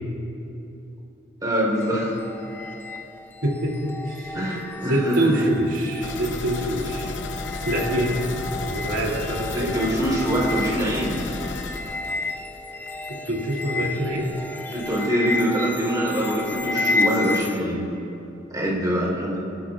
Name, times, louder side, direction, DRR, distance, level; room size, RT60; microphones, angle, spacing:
voice 1, 1.4-2.1 4.3-5.4 9.5-11.2 14.7-17.9 18.5-19.4, equal, 20° right, -4 dB, 3.7 m, -24 dB
sound 1, 1.7-17.6, left 3 dB, 10° left, 0.6 m, -32 dB
voice 2, 3.4-4.4 4.9-7.1 7.7-8.2 8.6-9.7 13.1-14.3, right 1 dB, 85° right, -3 dB, 2.9 m, -25 dB
sound 2, 6.0-12.7 13.0-13.1 13.5-13.6, left 3 dB, 70° left, 0.7 m, -33 dB
29.5 x 12.5 x 2.5 m, 2.9 s
head